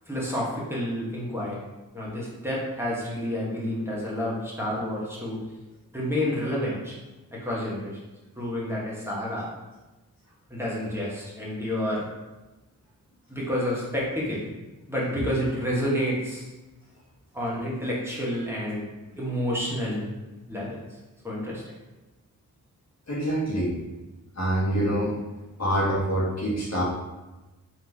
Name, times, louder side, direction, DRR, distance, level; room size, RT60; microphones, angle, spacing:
voice 1, 0.1-1.6 1.9-5.4 5.9-7.0 7.3-8.0 8.4-9.5 10.5-12.0 13.3-14.5 14.9-16.5 17.3-18.8 19.2-20.1 20.5-20.8 21.2-21.6, equal, 5° right, -6 dB, 1.5 m, -29 dB
voice 2, 23.1-23.7 24.4-25.1 25.6-26.8, right 1 dB, 45° left, -6 dB, 1.5 m, -25 dB
3.7 x 3.0 x 3.6 m, 1.1 s
supercardioid pair, 45°, 38 cm